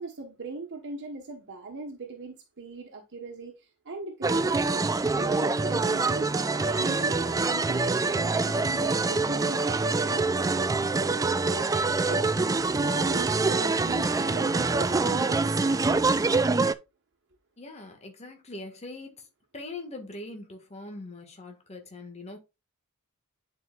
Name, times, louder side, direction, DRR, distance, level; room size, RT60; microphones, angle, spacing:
voice 1, 0.0-12.2 12.7-16.3, right 3 dB, 55° right, 1.3 m, -40 dB
sound 1, 4.2-16.7, right 3 dB, 15° right, 0.3 m, -25 dB
voice 2, 17.6-19.3 19.5-22.4, left 2 dB, 30° left, 1.7 m, -42 dB
10.5 x 4.8 x 2.4 m
head